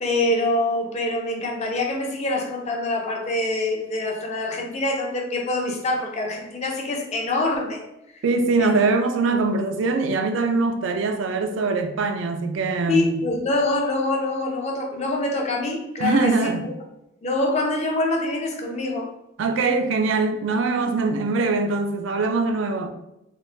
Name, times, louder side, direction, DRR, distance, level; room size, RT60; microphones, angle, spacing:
voice 1, 0.0-7.8 8.6-8.7 12.9-16.7 17.2-19.1, left 2 dB, 35° left, 0.5 m, -25 dB
voice 2, 8.2-13.2 16.0-16.6 19.4-22.9, right 3 dB, 70° right, 0.4 m, -22 dB
3.3 x 2.1 x 2.6 m
head